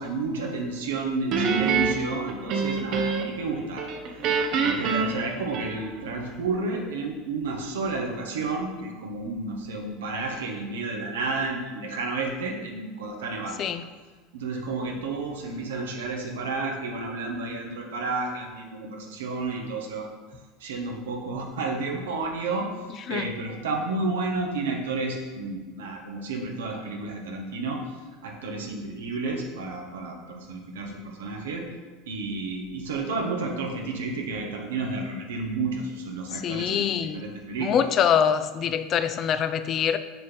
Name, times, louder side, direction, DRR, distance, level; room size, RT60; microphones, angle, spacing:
voice 1, 0.0-3.9 4.6-13.7 14.3-20.1 20.6-22.7 23.1-27.8 28.2-31.7 32.1-37.9, right 3 dB, 85° right, 1 dB, 1.3 m, -31 dB
Guitar, 1.3-3.5 3.8-6.1, right 5 dB, 55° right, 0.9 m, -26 dB
voice 2, 36.3-37.2 37.6-40.0, left 8 dB, 45° left, 11 dB, 0.5 m, -24 dB
6.6 x 4.2 x 5.4 m, 1.4 s
hypercardioid pair, 90°, 0 cm